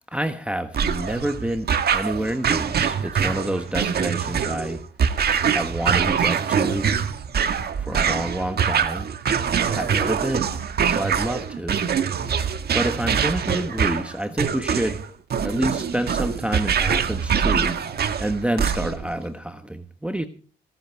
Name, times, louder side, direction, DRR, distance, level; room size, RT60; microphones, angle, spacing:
voice 1, 0.0-4.8 5.5-6.9 7.8-9.1 9.7-10.5 10.9-11.8 12.7-15.0 15.4-17.8 18.2-20.3, right 1 dB, 5° right, 1.2 m, -28 dB
sound 1, 0.7-19.1, right 7 dB, 55° right, 1.6 m, -24 dB
17.0 x 13.5 x 4.7 m
cardioid pair, 90°, 20 cm